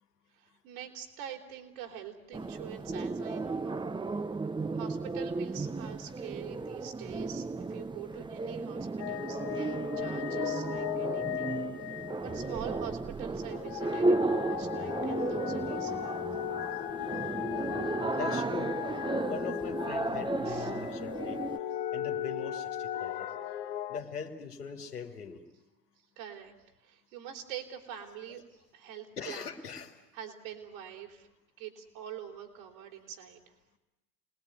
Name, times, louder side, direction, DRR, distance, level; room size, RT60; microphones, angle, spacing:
voice 1, 0.3-16.2 16.7-16.8 20.4-20.7 26.2-26.5 26.8-29.5 30.1-31.3 31.6-33.5, right 10 dB, 65° right, 2 dB, 4.0 m, -45 dB
sound 1, 2.3-21.6, right 3 dB, 10° right, 0.8 m, -34 dB
sound 2, 9.0-12.7 13.4-24.0, left 11 dB, 60° left, 1.9 m, -37 dB
voice 2, 18.2-18.7 19.3-21.4 21.9-23.3 23.9-25.4 29.2-30.0, left 6 dB, 85° left, 2 dB, 2.6 m, -40 dB
28.0 x 20.0 x 9.6 m, 0.99 s
figure-of-eight pair, 70°, 45 cm